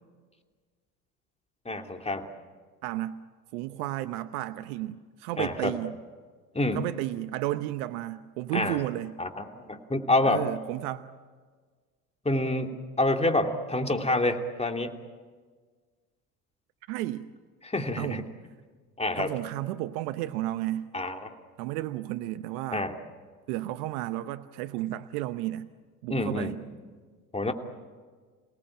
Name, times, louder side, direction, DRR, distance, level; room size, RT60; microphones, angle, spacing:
voice 1, 1.6-2.3 5.4-5.7 6.5-6.8 8.5-8.8 9.2-10.5 12.2-14.9 17.6-18.2 19.0-19.3 20.9-21.3 22.7-22.9 26.1-26.5 27.3-27.5, left 2 dB, 15° left, 4 dB, 2.9 m, -27 dB
voice 2, 2.8-3.1 3.5-5.9 6.7-9.1 10.3-11.0 16.9-17.3 18.0-18.2 19.1-20.9 21.6-22.9 23.5-25.7 26.0-26.6, right 15 dB, 75° right, 12 dB, 0.9 m, -32 dB
28.5 x 18.5 x 8.8 m, 1.5 s
hypercardioid pair, 70°, 45 cm